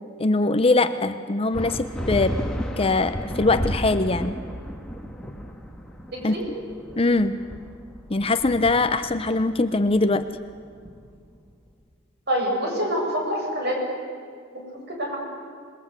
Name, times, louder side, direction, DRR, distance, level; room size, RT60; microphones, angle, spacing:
voice 1, 0.2-2.3 2.8-4.3 6.2-6.4 7.0-7.3 8.1-10.2, left 2 dB, 30° left, 10 dB, 0.7 m, -22 dB
sound 1, 1.5-11.5, equal, 5° left, 1.7 m, -33 dB
voice 2, 12.3-13.8 14.9-15.2, equal, 55° right, -1 dB, 7.6 m, -26 dB
27.0 x 20.5 x 8.2 m, 2.1 s
head